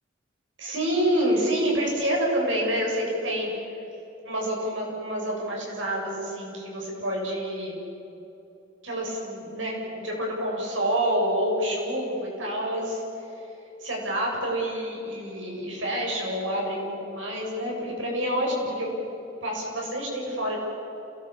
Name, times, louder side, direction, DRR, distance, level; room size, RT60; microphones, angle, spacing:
voice 1, 0.6-3.5 4.2-7.8 8.8-13.0 13.8-18.9 19.4-20.6, equal, 80° right, -2 dB, 7.9 m, -28 dB
28.0 x 19.0 x 8.6 m, 2.9 s
head